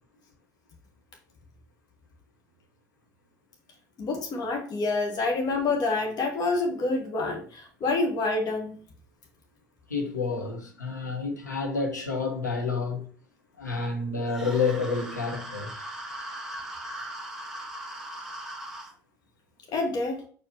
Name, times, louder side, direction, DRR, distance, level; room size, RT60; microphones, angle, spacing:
voice 1, 4.0-8.8 19.7-20.2, left 3 dB, 45° left, 1.5 m, -27 dB
voice 2, 9.9-13.1 13.6-15.9, left 4 dB, 90° left, 1.2 m, -29 dB
sound 1, 14.3-18.9, right 1 dB, 5° right, 2.0 m, -39 dB
7.0 x 4.5 x 3.0 m
figure-of-eight pair, 60°, 9 cm